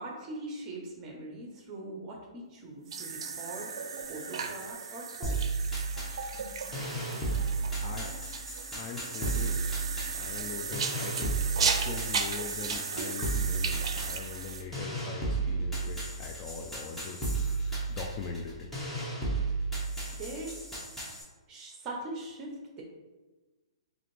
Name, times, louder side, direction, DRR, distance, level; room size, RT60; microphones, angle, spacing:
voice 1, 0.0-5.5 20.1-20.6 21.5-22.8, right 2 dB, 25° right, 0 dB, 0.8 m, -41 dB
sound 1, 2.9-14.6, right 5 dB, 70° right, 0.4 m, -35 dB
sound 2, 5.2-21.2, right 3 dB, 5° left, 0.9 m, -34 dB
voice 2, 7.8-8.1 8.8-9.7 10.1-11.4 11.6-18.7, left 5 dB, 30° left, 2 dB, 0.3 m, -41 dB
3.9 x 2.5 x 3.2 m, 1.2 s
hypercardioid pair, 150°, 3 cm